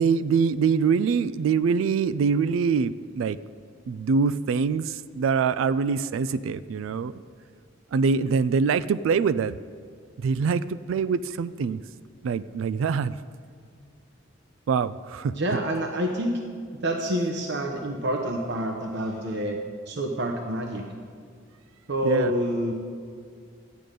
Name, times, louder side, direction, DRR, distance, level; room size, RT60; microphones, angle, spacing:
voice 1, 0.0-3.4 3.9-7.1 7.9-9.6 10.2-11.8 12.2-13.1 14.7-15.3 22.0-22.3, right 5 dB, 80° right, 16 dB, 0.3 m, -24 dB
voice 2, 15.4-16.4 16.8-19.6 19.9-20.8 21.9-22.7, right 1 dB, 65° right, 2 dB, 0.9 m, -27 dB
12.5 x 9.4 x 5.2 m, 2.1 s
head